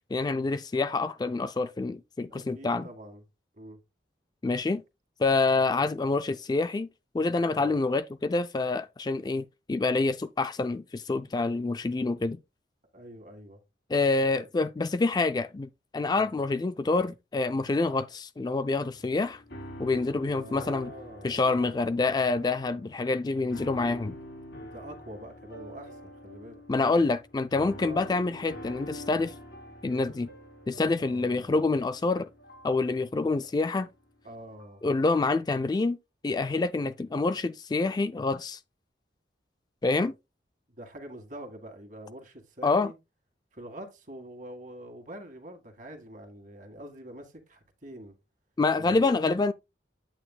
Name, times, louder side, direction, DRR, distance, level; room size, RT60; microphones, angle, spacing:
voice 1, 0.1-2.9 4.4-4.8 5.2-6.9 7.1-12.4 13.9-19.4 19.8-20.9 21.2-24.2 26.7-29.3 29.8-30.3 30.7-32.3 32.6-33.9 34.8-36.0 36.2-38.6 39.8-40.1 42.6-42.9 48.6-49.5, left 3 dB, 25° left, 0.3 m, -27 dB
voice 2, 2.3-3.2 3.6-3.8 7.5-7.7 12.9-13.6 16.2-16.4 20.2-22.1 24.6-26.6 27.7-28.1 31.0-31.7 34.2-34.8 40.8-43.0 43.5-48.2 48.8-49.5, right 1 dB, 45° right, 1.9 m, -45 dB
sound 1, 18.6-34.9, equal, 80° left, 3.2 m, -46 dB
8.9 x 8.5 x 2.2 m
head